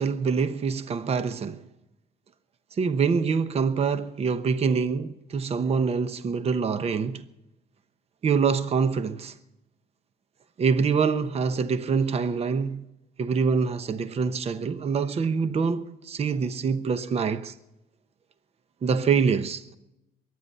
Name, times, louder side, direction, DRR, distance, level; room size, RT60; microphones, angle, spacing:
voice 1, 0.0-1.6 2.8-7.2 8.2-9.3 10.6-12.8 13.2-17.5 18.8-19.7, right 5 dB, 35° right, 0.9 m, -25 dB
23.0 x 9.6 x 5.5 m
cardioid pair, 110°, 17 cm